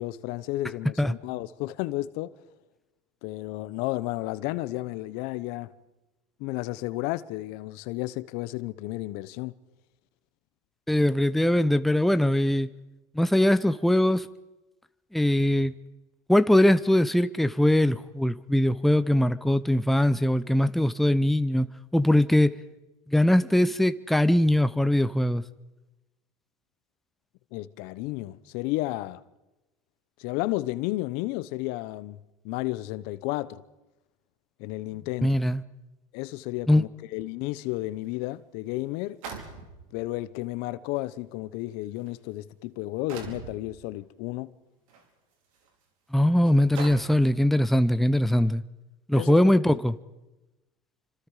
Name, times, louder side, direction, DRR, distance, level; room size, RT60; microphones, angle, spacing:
voice 1, 0.0-2.3 3.2-5.7 6.4-9.5 27.5-29.2 30.2-32.2 32.4-33.6 34.6-35.3 36.1-39.2 39.9-44.5 49.1-49.6, left 18 dB, 65° left, 1.1 m, -32 dB
voice 2, 10.9-12.7 13.1-14.3 15.1-15.7 16.3-21.7 21.9-22.5 23.1-25.4 35.2-35.6 36.7-36.8 46.1-48.6 49.1-49.9, left 1 dB, ahead, 0.8 m, -21 dB
sound 1, 38.1-38.2 39.2-40.0 41.0-41.1 41.8-42.1 43.1-43.6 44.9-45.0 45.6-45.7 46.8-47.3, right 5 dB, 85° right, 4.8 m, -39 dB
28.0 x 26.0 x 5.0 m
supercardioid pair, 95°, 17 cm